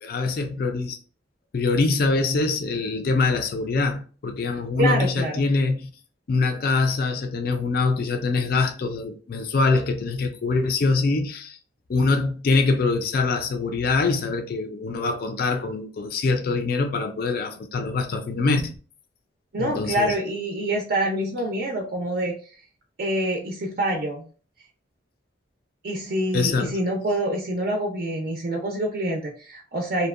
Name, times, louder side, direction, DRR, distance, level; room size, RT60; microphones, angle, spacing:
voice 1, 0.0-1.0 1.5-5.9 6.3-11.6 11.9-18.8 19.6-20.1 26.3-26.7, left 3 dB, 50° left, 0.4 m, -24 dB
voice 2, 4.8-5.5 19.5-22.6 23.0-24.2 25.8-30.1, right 1 dB, 55° right, 0.5 m, -26 dB
2.7 x 2.1 x 2.4 m
head